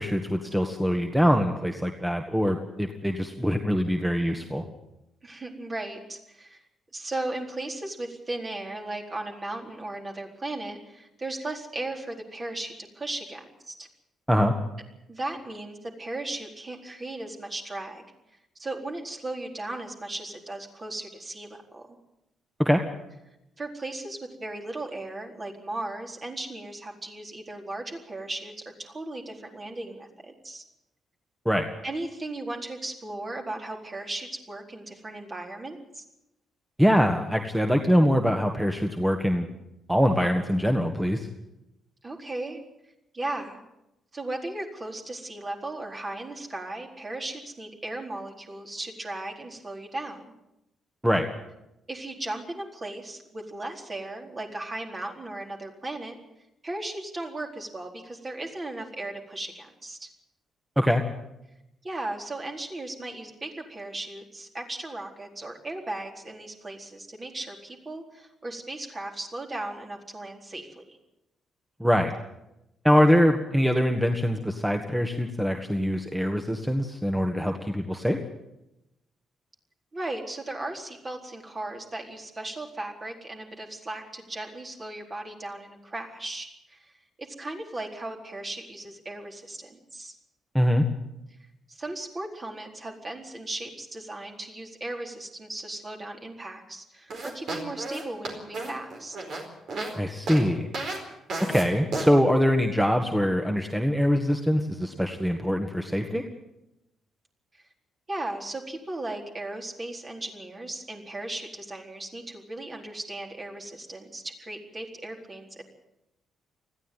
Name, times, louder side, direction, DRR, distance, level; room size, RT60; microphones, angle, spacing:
voice 1, 0.0-4.7 14.3-14.5 22.6-22.8 31.5-31.7 36.8-39.5 39.9-41.3 51.0-51.3 60.8-61.0 71.8-72.1 72.8-78.2 90.5-90.9 99.9-100.7 101.4-106.3, equal, 5° right, 4 dB, 1.9 m, -23 dB
voice 2, 5.2-6.6 6.9-13.9 15.1-18.0 18.6-22.0 23.6-30.6 31.8-36.0 42.0-42.6 43.1-43.6 44.1-50.2 51.9-56.2 56.6-60.1 61.8-71.0 79.9-86.9 87.2-90.1 91.7-99.2 107.5-107.6 108.1-115.6, right 2 dB, 35° right, 1 dB, 4.2 m, -36 dB
sound 1, 97.1-99.9 100.3-100.4 100.7-101.0 101.3-101.6 101.9-102.1, right 2 dB, 55° right, 4.5 m, -32 dB
20.0 x 14.5 x 9.3 m, 0.90 s
figure-of-eight pair, 40°, 0 cm